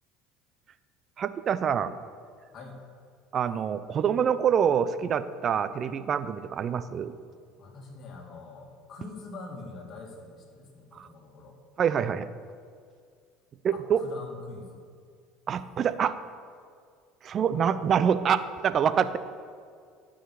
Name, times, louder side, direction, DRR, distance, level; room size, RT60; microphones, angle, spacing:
voice 1, 1.2-1.9 3.3-7.1 11.0-11.1 11.8-12.3 13.6-14.0 15.5-16.2 17.2-19.2, right 8 dB, 45° right, 14 dB, 0.5 m, -26 dB
voice 2, 7.6-11.6 13.7-14.8, left 3 dB, 45° left, -1 dB, 2.5 m, -44 dB
12.5 x 6.5 x 4.7 m, 2.2 s
hypercardioid pair, 80°, 0 cm